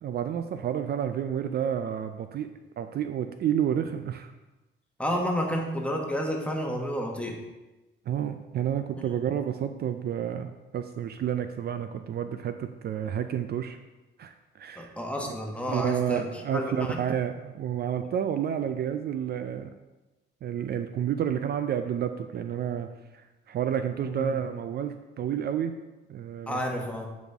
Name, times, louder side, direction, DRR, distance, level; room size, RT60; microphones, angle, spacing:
voice 1, 0.0-4.3 8.1-13.8 14.2-14.9 15.7-19.7 20.4-22.9 23.1-25.7 26.1-26.6, right 9 dB, 55° right, 9 dB, 0.4 m, -30 dB
voice 2, 5.0-7.4 9.0-9.1 14.8-17.0 24.0-24.4 26.5-27.1, equal, 5° left, 0 dB, 1.2 m, -31 dB
8.6 x 4.1 x 3.5 m, 1.1 s
cardioid pair, 90°, 20 cm